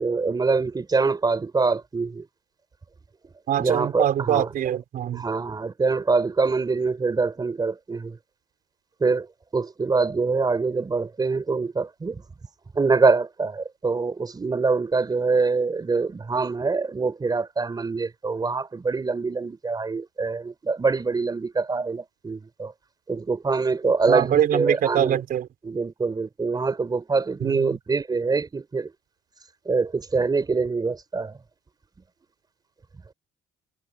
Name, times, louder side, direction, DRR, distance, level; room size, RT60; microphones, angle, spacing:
voice 1, 0.0-2.3 3.6-4.5 5.1-8.2 9.0-9.3 9.5-12.2 12.7-22.7 23.1-25.2 25.6-28.9 29.6-31.4, right 4 dB, 25° right, 4.6 m, -24 dB
voice 2, 3.5-5.2 24.1-25.5 27.4-27.7, right 10 dB, 60° right, 4.3 m, -23 dB
cardioid pair, 110°, 17 cm